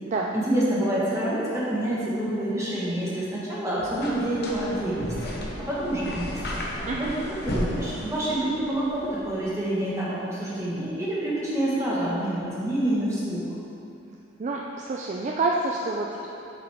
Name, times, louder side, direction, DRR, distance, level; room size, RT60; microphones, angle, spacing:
voice 1, 0.3-6.6 7.0-13.4, right 1 dB, 15° right, -8 dB, 1.5 m, -27 dB
sound 1, 3.8-9.4, left 1 dB, 50° left, 1.0 m, -34 dB
voice 2, 14.4-16.3, right 3 dB, 35° right, -1 dB, 0.4 m, -28 dB
7.8 x 6.0 x 3.5 m, 2.8 s
head